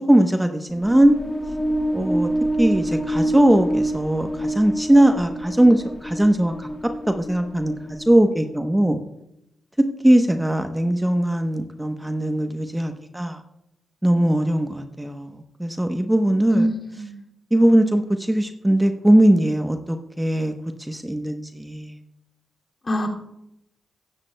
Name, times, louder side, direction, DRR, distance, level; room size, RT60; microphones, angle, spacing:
voice 1, 0.1-1.1 1.9-2.3 2.6-6.7 7.1-9.0 9.8-13.4 14.0-16.7 17.5-20.5 20.9-21.9, right 1 dB, 10° right, 6 dB, 0.9 m, -19 dB
sound 1, 0.7-8.4, right 1 dB, 25° left, 0.8 m, -27 dB
voice 2, 16.5-17.1 22.8-23.1, equal, 45° left, 1 dB, 2.4 m, -24 dB
15.5 x 11.0 x 2.2 m, 0.84 s
supercardioid pair, 40°, 0 cm